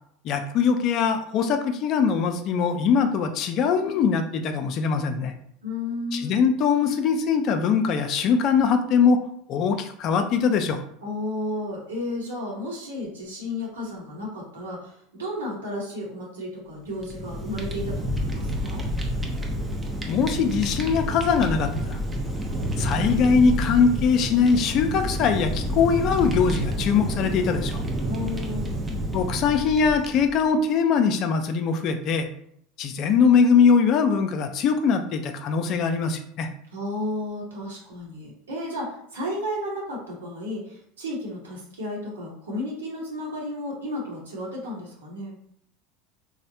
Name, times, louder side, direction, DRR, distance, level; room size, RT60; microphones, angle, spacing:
voice 1, 0.2-5.3 6.1-9.2 9.5-10.8 20.1-22.0 22.8-27.8 29.1-32.3 32.8-36.5, left 6 dB, 50° left, 7 dB, 0.4 m, -22 dB
voice 2, 5.6-6.4 11.0-18.9 28.1-28.9 36.7-45.4, left 1 dB, 90° right, -3 dB, 1.0 m, -33 dB
Fire, 16.9-30.5, equal, 20° right, 0.6 m, -29 dB
3.2 x 2.1 x 2.7 m, 0.68 s
hypercardioid pair, 90°, 0 cm